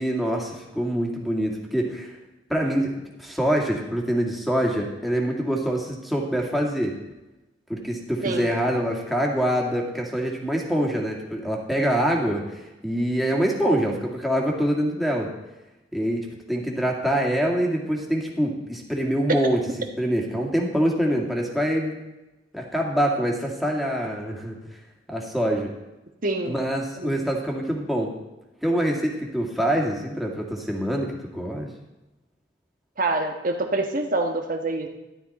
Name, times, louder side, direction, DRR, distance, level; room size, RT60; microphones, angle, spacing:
voice 1, 0.0-2.1 2.5-2.9 3.2-6.9 7.7-15.3 15.9-19.6 20.0-22.0 22.5-24.6 25.1-25.7 26.5-28.1 28.6-31.7, equal, ahead, -2 dB, 2.1 m, -25 dB
voice 2, 26.2-26.5 27.0-27.2 33.0-34.9, right 2 dB, 50° right, 4 dB, 1.3 m, -26 dB
13.0 x 12.0 x 4.2 m, 1.0 s
head